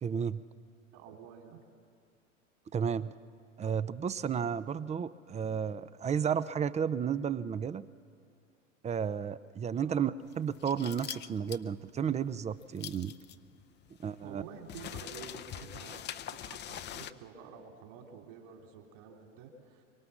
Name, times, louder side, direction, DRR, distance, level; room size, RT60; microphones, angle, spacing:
voice 1, 0.0-0.4 2.7-3.1 3.6-7.8 8.8-13.1 14.0-14.4, right 7 dB, 15° right, 16 dB, 0.6 m, -32 dB
voice 2, 0.9-1.6 9.8-10.0 14.2-19.8, right 6 dB, 55° right, 2 dB, 3.7 m, -49 dB
sound 1, 10.2-17.1, left 11 dB, 25° left, 0.7 m, -44 dB
24.5 x 24.0 x 7.2 m, 2.5 s
hypercardioid pair, 90°, 39 cm